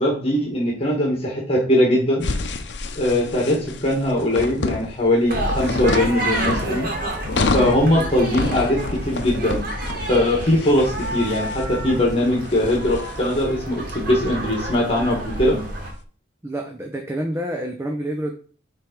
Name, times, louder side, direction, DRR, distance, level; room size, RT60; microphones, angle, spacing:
voice 1, 0.0-2.3 3.0-6.9 7.5-9.7 10.1-15.6, left 1 dB, 30° left, -2 dB, 1.7 m, -20 dB
sound 1, 2.2-15.9, left 3 dB, 70° left, 0.7 m, -30 dB
sound 2, 5.3-15.9, right 1 dB, 50° right, 1.9 m, -29 dB
voice 2, 16.4-18.3, right 1 dB, 15° right, 2 dB, 0.7 m, -28 dB
7.4 x 3.5 x 5.2 m, 0.42 s
head